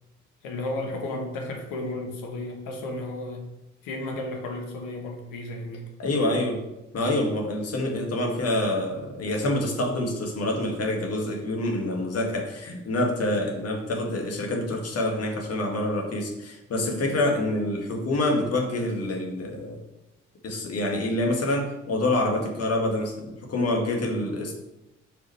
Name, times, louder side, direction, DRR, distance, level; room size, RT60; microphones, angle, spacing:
voice 1, 0.4-3.4 3.8-5.9, left 2 dB, 60° left, 2 dB, 1.6 m, -33 dB
voice 2, 6.0-6.6 6.9-19.8 20.4-24.5, left 1 dB, 40° left, 1 dB, 2.0 m, -26 dB
5.6 x 5.1 x 4.5 m, 0.95 s
figure-of-eight pair, 45°, 36 cm